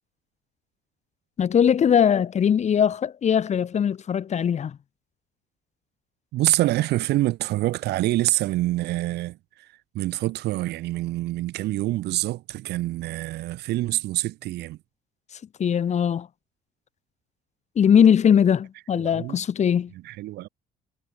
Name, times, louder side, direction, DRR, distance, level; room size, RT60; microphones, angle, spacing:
voice 1, 1.4-4.8 15.6-16.3 17.8-19.9, left 8 dB, 40° left, 1.7 m, -20 dB
voice 2, 6.3-9.7 9.9-14.8 19.0-19.4 20.0-20.5, right 17 dB, 80° right, 3.0 m, -26 dB
cardioid pair, 110°, 17 cm